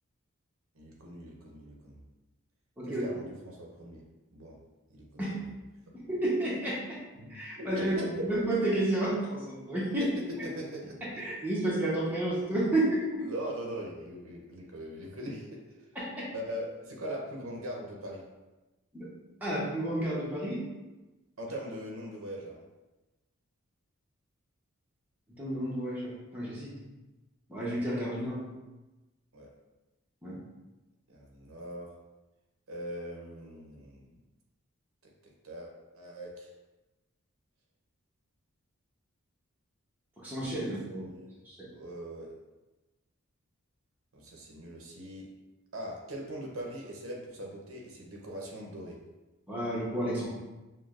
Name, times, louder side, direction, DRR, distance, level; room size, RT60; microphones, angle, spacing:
voice 1, 0.7-2.0 2.8-4.0 4.3-4.6 4.9-5.4 7.2-8.3 10.0-11.2 13.2-15.6 16.3-18.2 21.4-22.6 29.3-29.5 31.1-31.9 32.7-34.1 35.0-35.1 35.4-36.5 40.9-41.4 41.7-42.3 44.1-45.3 45.7-49.0, right 1 dB, 75° right, -1 dB, 0.7 m, -41 dB
voice 2, 5.9-7.0 7.3-7.9 8.3-10.1 11.2-13.3 16.0-16.3 18.9-19.1 19.4-20.6 25.4-26.7 27.5-28.4 30.2-30.4 40.2-41.0 41.5-41.7 49.5-50.3, right 1 dB, 10° right, -7 dB, 0.8 m, -31 dB
6.2 x 2.2 x 2.4 m, 1.1 s
head